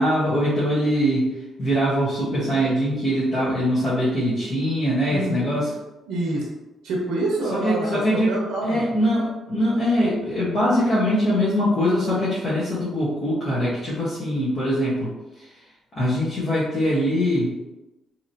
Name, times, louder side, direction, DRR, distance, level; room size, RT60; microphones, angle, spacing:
voice 1, 0.0-5.7 7.5-8.3 8.6-15.1 15.3-15.6 15.9-17.5, equal, 50° left, -10 dB, 1.1 m, -22 dB
voice 2, 5.1-5.6 6.1-6.4 6.8-8.0 8.3-8.8, right 2 dB, 85° right, -2 dB, 0.6 m, -26 dB
2.9 x 2.8 x 2.6 m, 1.0 s
cardioid pair, 90°, 0 cm